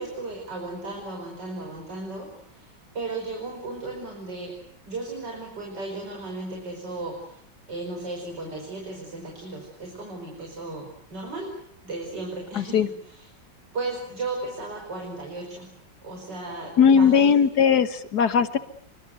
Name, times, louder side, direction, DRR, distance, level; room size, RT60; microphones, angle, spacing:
voice 1, 0.0-4.6 4.9-7.4 7.7-11.5 11.8-13.3 13.7-15.7 16.0-17.5, right 2 dB, 65° right, 1 dB, 5.9 m, -35 dB
voice 2, 12.5-12.9 16.8-18.6, left 7 dB, 60° left, 12 dB, 1.9 m, -19 dB
26.5 x 25.0 x 7.9 m, 0.67 s
omnidirectional pair, 2.1 m